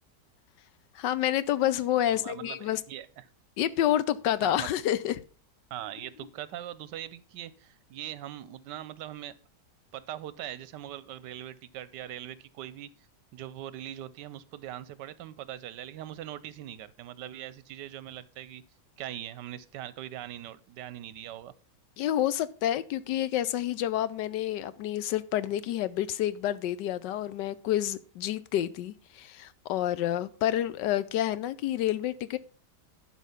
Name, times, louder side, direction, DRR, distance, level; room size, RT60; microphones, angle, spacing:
voice 1, 0.9-2.8 3.6-5.2 22.0-32.4, left 12 dB, 90° left, 1.3 m, -29 dB
voice 2, 2.0-3.2 4.4-4.7 5.7-9.3 9.9-12.9 13.3-18.6 19.0-21.5, right 12 dB, 85° right, 1.3 m, -41 dB
11.5 x 4.6 x 5.7 m
omnidirectional pair, 1.9 m